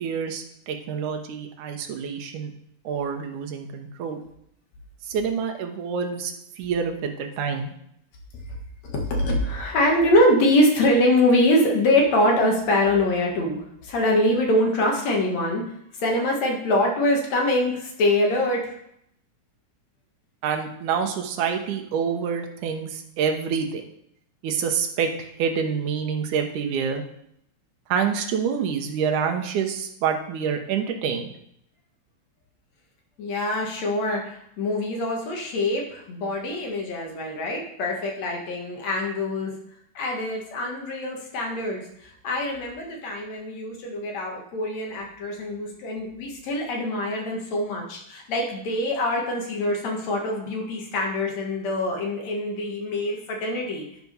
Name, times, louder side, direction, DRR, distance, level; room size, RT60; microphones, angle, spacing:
voice 1, 0.0-2.5 2.8-4.2 5.1-7.7 20.4-23.8 24.4-27.0 27.9-31.3, right 6 dB, 90° right, 4 dB, 2.5 m, -27 dB
voice 2, 8.8-15.6 15.9-18.8 33.2-39.5 39.9-53.8, left 1 dB, 65° left, 0 dB, 2.7 m, -24 dB
11.0 x 4.7 x 5.4 m, 0.73 s
omnidirectional pair, 3.4 m